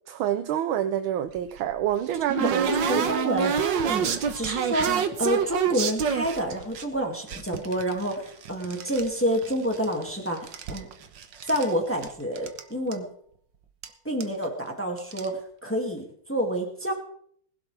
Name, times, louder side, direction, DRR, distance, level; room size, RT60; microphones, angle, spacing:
voice 1, 0.1-2.7 4.0-4.2, right 11 dB, 80° right, 10 dB, 1.6 m, -27 dB
sound 1, 1.4-6.8 7.3-9.1 9.3-10.1 10.4-11.7 12.0-12.1 12.4-12.6 12.9-13.0 13.8-13.9 14.2-14.4 15.0-15.3, right 7 dB, 65° right, 1.7 m, -28 dB
voice 2, 2.3-3.6 3.9-10.9 11.5-13.1 14.0-16.9, equal, 5° left, 1 dB, 2.1 m, -28 dB
20.5 x 12.0 x 3.4 m, 0.62 s
omnidirectional pair, 2.2 m